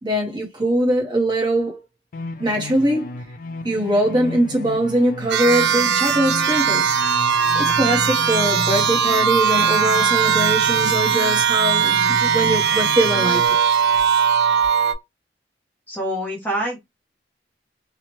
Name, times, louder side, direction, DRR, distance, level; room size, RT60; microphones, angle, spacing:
voice 1, 0.0-1.8 2.4-3.2 3.6-7.0 7.3-13.6, right 1 dB, 25° right, 0.8 m, -22 dB
sound 1, 2.1-13.5, left 3 dB, 50° left, 0.3 m, -34 dB
sound 2, 5.3-14.9, right 7 dB, 70° right, 0.4 m, -19 dB
voice 2, 15.9-16.8, equal, 10° left, 0.7 m, -25 dB
2.9 x 2.1 x 2.9 m
head